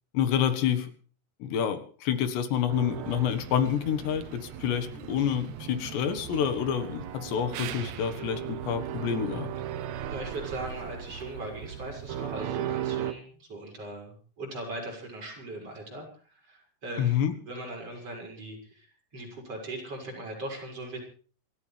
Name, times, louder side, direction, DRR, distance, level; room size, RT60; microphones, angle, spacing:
voice 1, 0.1-0.9 1.4-9.5 17.0-17.4, left 9 dB, 80° left, 10 dB, 3.7 m, -28 dB
sound 1, 2.7-13.1, right 10 dB, 85° right, 1.6 m, -37 dB
voice 2, 10.0-16.1 16.4-17.2 17.5-18.9 19.1-21.0, right 1 dB, 35° right, -1 dB, 6.9 m, -39 dB
27.5 x 14.5 x 3.4 m, 0.41 s
omnidirectional pair, 4.8 m